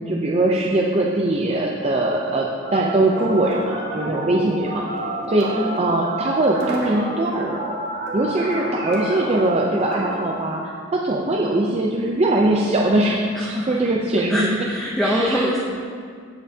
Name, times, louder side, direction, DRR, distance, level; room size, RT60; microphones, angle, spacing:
voice 1, 0.0-2.5 2.7-4.8 5.3-14.7 15.0-15.5, right 1 dB, 30° right, -2 dB, 0.6 m, -21 dB
sound 1, 2.7-10.2, right 1 dB, 55° right, 1.7 m, -29 dB
voice 2, 5.4-5.9 13.3-13.5 14.3-15.6, equal, 5° left, -5 dB, 0.7 m, -24 dB
16.0 x 5.4 x 2.8 m, 2.1 s
head